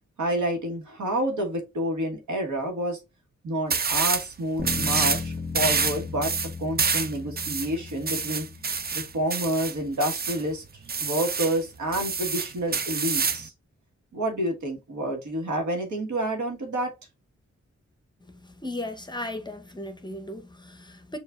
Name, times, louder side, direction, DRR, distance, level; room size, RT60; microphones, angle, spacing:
voice 1, 0.2-3.0 3.4-6.3 6.6-8.5 8.9-10.6 11.0-13.5 14.1-16.9, right 1 dB, 85° right, 1.2 m, -29 dB
sound 1, 3.7-4.3 4.6-5.2 5.5-10.4 10.9-11.6 11.9-13.5, right 5 dB, 35° right, 0.5 m, -27 dB
sound 2, 4.6-8.9, left 4 dB, 10° right, 1.5 m, -36 dB
voice 2, 18.4-21.2, left 1 dB, 15° left, 0.7 m, -36 dB
6.7 x 2.5 x 2.3 m
cardioid pair, 60°, 29 cm